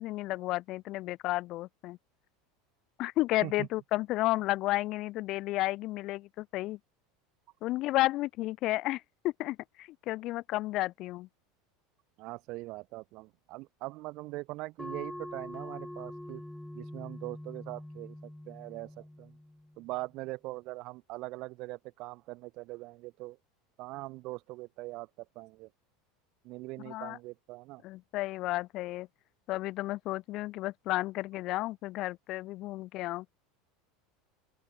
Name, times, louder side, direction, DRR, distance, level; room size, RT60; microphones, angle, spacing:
voice 1, 0.0-2.0 3.0-6.8 7.6-11.3 26.9-27.2 27.8-29.1 29.5-33.3, left 17 dB, 45° left, 0.7 m, -32 dB
voice 2, 12.2-16.4 16.7-19.4 19.8-23.4 23.8-25.7 26.4-27.8, right 21 dB, 50° right, 0.5 m, -42 dB
sound 1, 14.8-19.9, left 1 dB, 5° left, 1.8 m, -44 dB
open air
supercardioid pair, 150°, 0 cm